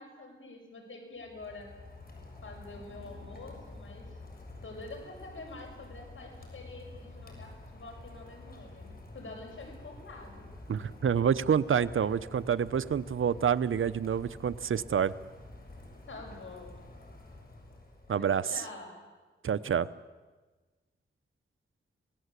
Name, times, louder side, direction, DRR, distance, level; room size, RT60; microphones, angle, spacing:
voice 1, 0.0-1.7 2.4-4.2 4.6-10.4 10.8-10.9 16.1-16.8 18.1-19.0, left 2 dB, 70° left, 3 dB, 6.9 m, -47 dB
Rain, 1.2-18.4, left 2 dB, 45° left, 7.0 m, -49 dB
voice 2, 10.7-15.1 18.1-18.5 19.4-19.9, right 7 dB, 70° right, 14 dB, 0.9 m, -28 dB
27.5 x 19.0 x 8.4 m, 1.3 s
cardioid pair, 60°, 21 cm